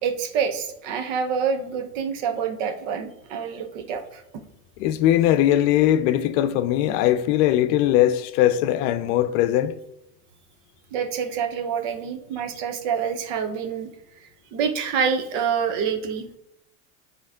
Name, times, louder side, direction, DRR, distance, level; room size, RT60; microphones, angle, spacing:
voice 1, 0.0-4.2 10.9-13.9 14.2-16.4, right 7 dB, 65° right, 1.1 m, -27 dB
voice 2, 4.8-9.7, left 12 dB, 55° left, 0.6 m, -20 dB
9.6 x 3.3 x 3.6 m
supercardioid pair, 110°, 41 cm